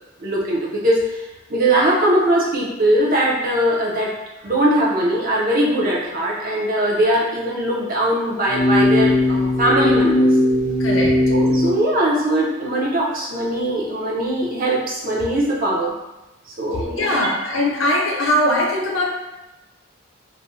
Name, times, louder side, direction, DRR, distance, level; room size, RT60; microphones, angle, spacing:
voice 1, 0.2-10.3 11.3-15.9 16.6-17.2, right 1 dB, 45° right, -3 dB, 0.6 m, -20 dB
sound 1, 8.5-11.7, left 1 dB, 15° left, 0.6 m, -17 dB
voice 2, 10.8-11.1 17.0-19.0, left 1 dB, 75° left, -3 dB, 0.7 m, -20 dB
2.5 x 2.1 x 3.7 m, 0.99 s
head